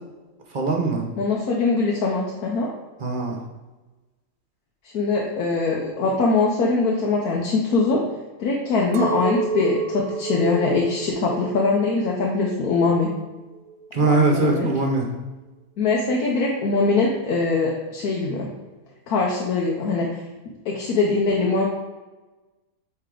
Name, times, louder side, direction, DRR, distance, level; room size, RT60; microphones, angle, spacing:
voice 1, 0.5-1.0 3.0-3.4 13.9-15.1, right 3 dB, 40° right, 0 dB, 0.9 m, -21 dB
voice 2, 1.2-2.7 4.9-8.0 8.4-13.1 14.0-14.7 15.8-18.5 19.1-20.2 20.6-21.7, left 3 dB, 80° left, -2 dB, 1.3 m, -22 dB
Chink clink, 8.9-13.2 13.7-14.3, right 5 dB, 75° right, 1.0 m, -30 dB
7.9 x 3.4 x 3.7 m, 1.2 s
omnidirectional pair, 1.6 m